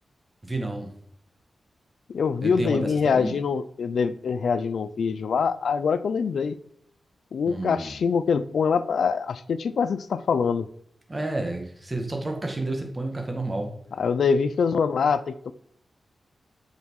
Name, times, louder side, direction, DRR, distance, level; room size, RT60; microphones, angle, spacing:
voice 1, 0.4-0.9 2.4-3.4 7.5-8.0 11.1-13.7, right 2 dB, 20° right, 3 dB, 1.8 m, -30 dB
voice 2, 2.1-6.6 7.3-10.7 14.0-15.5, left 6 dB, 80° left, 13 dB, 0.6 m, -24 dB
12.5 x 5.7 x 4.8 m, 0.66 s
wide cardioid pair, 150°, 0 cm